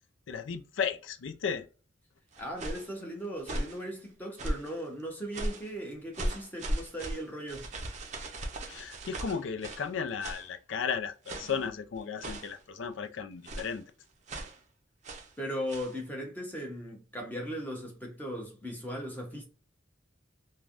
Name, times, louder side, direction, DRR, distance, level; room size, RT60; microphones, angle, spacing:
voice 1, 0.3-1.7 8.7-13.8, left 6 dB, 75° left, 0.4 m, -35 dB
sound 1, 2.3-2.9 3.4-3.8 4.4-4.8 5.3-5.7 6.1-9.9 10.2-10.5 11.2-11.6 12.2-12.6 13.4-13.8 14.3-14.6 15.0-15.3 15.7-15.9, right 1 dB, 35° right, 0.5 m, -37 dB
voice 2, 2.4-7.7 15.4-19.5, equal, 10° left, 0.9 m, -38 dB
3.3 x 2.2 x 2.4 m
head